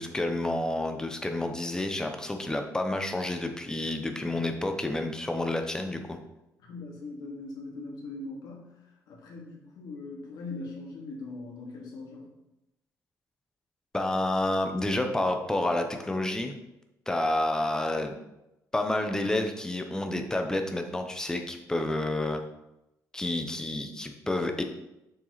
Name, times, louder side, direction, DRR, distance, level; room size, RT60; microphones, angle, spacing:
voice 1, 0.0-6.2 13.9-16.6 17.1-18.2 18.7-22.4 23.1-24.6, left 1 dB, 10° left, 5 dB, 0.9 m, -29 dB
voice 2, 6.6-8.7 9.1-12.3, left 3 dB, 75° left, -2 dB, 2.4 m, -41 dB
7.2 x 6.0 x 4.1 m, 0.91 s
cardioid pair, 140°, 7 cm